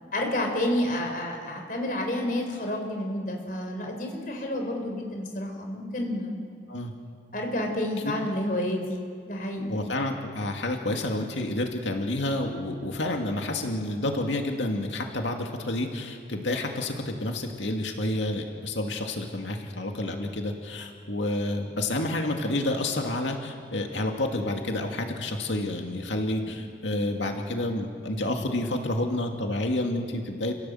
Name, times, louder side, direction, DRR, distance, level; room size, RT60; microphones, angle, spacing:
voice 1, 0.1-6.4 7.3-9.7, left 1 dB, 45° left, 2 dB, 4.3 m, -30 dB
voice 2, 9.7-30.5, left 1 dB, 90° left, 3 dB, 2.4 m, -29 dB
29.5 x 17.0 x 7.8 m, 2.2 s
head